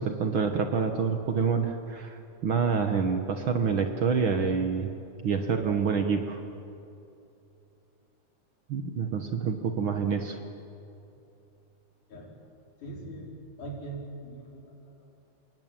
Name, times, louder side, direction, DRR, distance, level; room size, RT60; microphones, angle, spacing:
voice 1, 0.0-4.9 5.2-6.4 8.7-10.4, right 5 dB, 55° right, 5 dB, 1.6 m, -27 dB
voice 2, 12.8-13.3 13.6-15.1, right 2 dB, 90° left, -2 dB, 6.0 m, -41 dB
28.5 x 20.0 x 9.0 m, 2.7 s
omnidirectional pair, 3.4 m